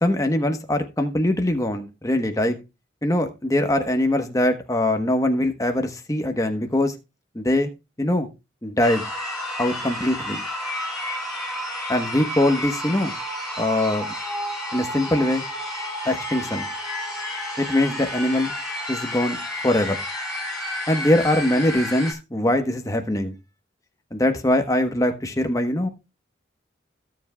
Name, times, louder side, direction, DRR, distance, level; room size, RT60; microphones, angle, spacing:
voice 1, 0.0-2.6 3.0-6.9 7.3-7.7 8.0-8.3 8.6-9.0 9.6-10.4 11.9-13.1 13.6-14.1 14.7-15.4 16.0-16.7 17.6-18.5 18.9-19.4 19.6-20.0 20.9-23.3 24.1-25.9, left 1 dB, 20° left, 1.1 m, -22 dB
sound 1, 8.8-22.1, left 1 dB, 5° right, 4.2 m, -31 dB
16.0 x 7.2 x 2.3 m
head